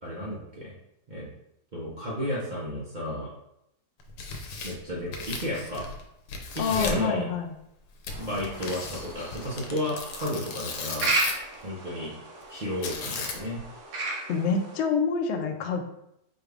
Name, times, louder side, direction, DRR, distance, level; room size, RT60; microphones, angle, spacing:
voice 1, 0.0-0.7 1.1-1.3 1.7-3.3 4.6-5.9 6.5-7.3 8.2-11.1 11.6-12.1 12.5-13.6, left 1 dB, 40° right, -5 dB, 0.7 m, -32 dB
Tearing, 4.0-6.0 6.3-7.1 8.0-11.5 12.8-13.6, left 4 dB, 90° left, 1.2 m, -36 dB
voice 2, 6.6-7.5 14.3-15.8, left 5 dB, 70° left, 4 dB, 0.7 m, -27 dB
sound 1, 8.1-14.8, right 2 dB, 70° right, 1.3 m, -34 dB
4.3 x 2.4 x 3.3 m, 0.79 s
omnidirectional pair, 1.7 m